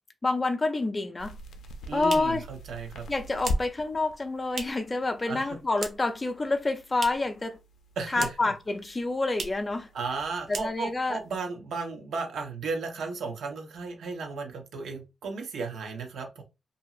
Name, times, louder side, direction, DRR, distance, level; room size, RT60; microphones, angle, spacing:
voice 1, 0.2-1.4 1.9-2.4 3.1-7.6 8.1-9.9 10.5-11.2, left 3 dB, 20° left, 0.4 m, -28 dB
sound 1, 1.2-11.4, equal, 85° left, 0.4 m, -41 dB
sound 2, 1.5-5.0 5.2-6.2 6.5-7.4 7.7-8.6 8.9-9.0 9.3-9.7 10.1-10.2 10.4-11.1, right 4 dB, 60° right, 0.5 m, -40 dB
voice 2, 1.8-3.1 5.2-5.6 8.0-8.3 9.9-16.4, right 4 dB, 90° right, 0.8 m, -34 dB
2.8 x 2.7 x 2.4 m
wide cardioid pair, 140°, 0 cm